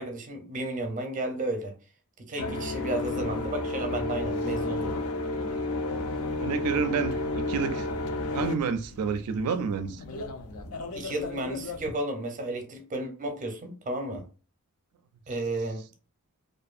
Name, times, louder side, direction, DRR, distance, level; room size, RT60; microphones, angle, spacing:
voice 1, 0.0-1.7 2.3-5.0 10.9-14.2 15.3-15.8, right 2 dB, 35° right, 0.6 m, -33 dB
sound 1, 2.4-11.9, left 2 dB, 65° left, 0.4 m, -32 dB
voice 2, 6.4-7.9 8.3-10.0, right 6 dB, 80° right, 0.4 m, -29 dB
2.5 x 2.5 x 2.4 m
head